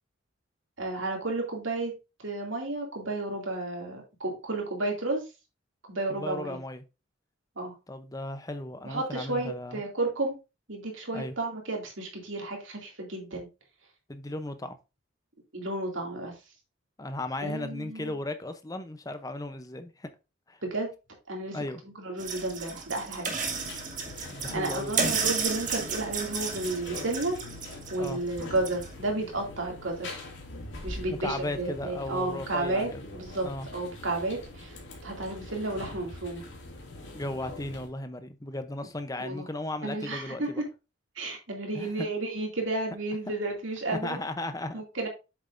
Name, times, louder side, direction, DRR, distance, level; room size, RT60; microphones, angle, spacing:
voice 1, 0.8-1.9 2.2-5.2 5.8-6.6 7.6-7.7 8.8-10.4 10.7-13.5 15.5-16.3 17.4-18.1 20.6-20.9 21.3-23.3 24.5-27.4 27.9-30.2 30.8-36.4 39.2-39.5 39.8-40.7 41.2-44.2 44.7-45.1, right 2 dB, 75° right, 2.5 m, -32 dB
voice 2, 6.1-6.8 7.9-9.8 11.1-11.3 14.1-14.7 17.0-20.1 20.5-20.6 21.5-21.8 24.3-24.9 28.0-28.2 31.1-33.0 33.4-33.7 37.1-40.6 41.7-42.1 43.9-45.1, left 2 dB, 15° left, 0.6 m, -36 dB
sound 1, 22.2-28.9, right 5 dB, 40° right, 1.8 m, -33 dB
sound 2, 23.4-37.9, left 2 dB, 65° left, 2.3 m, -43 dB
8.0 x 6.7 x 2.6 m
head